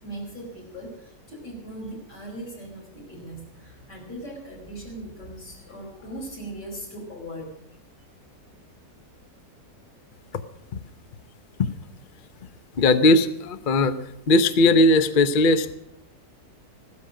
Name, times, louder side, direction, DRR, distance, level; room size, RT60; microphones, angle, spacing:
voice 1, 0.0-7.5, right 1 dB, 85° left, -1 dB, 5.7 m, -39 dB
voice 2, 12.8-14.0 14.3-15.7, left 2 dB, 40° left, 11 dB, 0.7 m, -18 dB
16.0 x 13.0 x 6.4 m, 0.80 s
omnidirectional pair, 1.8 m